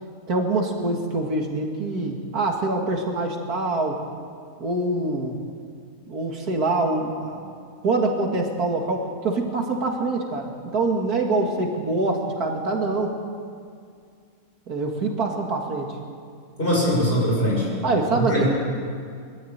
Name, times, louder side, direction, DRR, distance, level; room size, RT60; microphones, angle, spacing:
voice 1, 0.3-4.0 4.6-5.4 6.1-7.5 7.8-13.1 14.7-16.0 17.8-18.4, right 2 dB, 85° right, 2 dB, 2.6 m, -25 dB
voice 2, 16.6-17.7 18.2-18.4, equal, 35° left, -4 dB, 6.8 m, -21 dB
22.0 x 13.0 x 8.9 m, 2.2 s
omnidirectional pair, 1.6 m